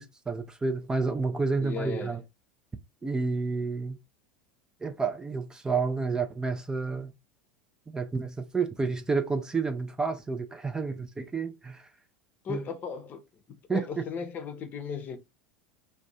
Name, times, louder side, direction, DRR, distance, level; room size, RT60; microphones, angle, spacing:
voice 1, 0.0-2.2 3.0-4.0 4.8-7.1 7.9-11.9 12.5-12.6 13.7-14.1, right 4 dB, 15° right, 0.4 m, -30 dB
voice 2, 1.6-2.2 12.4-13.2 13.7-15.2, left 6 dB, 35° left, 0.7 m, -36 dB
2.6 x 2.3 x 4.0 m
hypercardioid pair, 80°, 5 cm